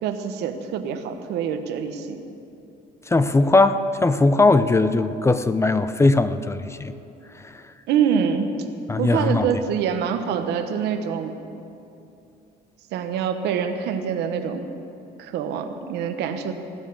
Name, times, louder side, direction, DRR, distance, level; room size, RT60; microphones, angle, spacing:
voice 1, 0.0-2.2 7.9-8.5 9.0-11.3 12.9-14.6 15.2-16.5, right 7 dB, 85° right, 7 dB, 1.2 m, -25 dB
voice 2, 3.1-6.9 7.4-7.5 8.9-9.5, left 3 dB, 15° left, 11 dB, 0.5 m, -19 dB
18.0 x 9.1 x 7.2 m, 2.7 s
cardioid pair, 110°, 17 cm